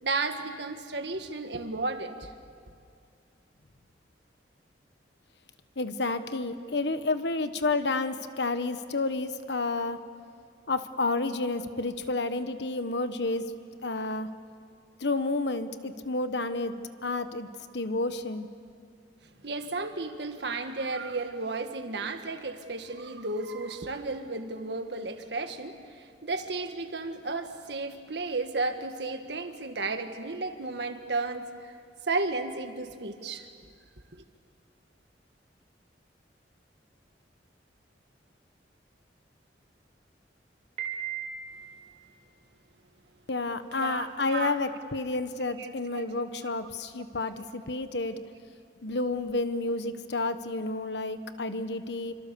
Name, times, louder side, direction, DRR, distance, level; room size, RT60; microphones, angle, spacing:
voice 1, 0.0-2.3 19.4-31.7 32.1-33.5 34.1-34.2 43.8-44.6 45.5-46.0, right 3 dB, 65° right, 7 dB, 1.7 m, -33 dB
voice 2, 5.8-10.0 10.7-13.5 13.8-14.3 15.0-16.7 17.0-18.5 43.3-48.2 48.8-52.1, left 3 dB, 70° left, 10 dB, 1.2 m, -30 dB
Piano, 40.8-41.8, right 8 dB, 35° right, 4.3 m, -36 dB
28.0 x 25.5 x 7.0 m, 2.3 s
head